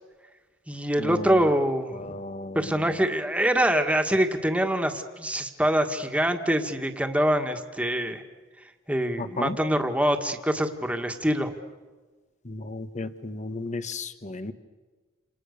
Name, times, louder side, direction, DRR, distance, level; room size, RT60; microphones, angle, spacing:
voice 1, 0.7-2.2 2.6-8.2 8.9-11.5, right 1 dB, 5° right, 5 dB, 1.9 m, -25 dB
voice 2, 2.0-2.6 9.2-9.6 12.5-14.5, left 2 dB, 35° left, 11 dB, 1.2 m, -34 dB
29.0 x 28.5 x 6.8 m, 1.3 s
head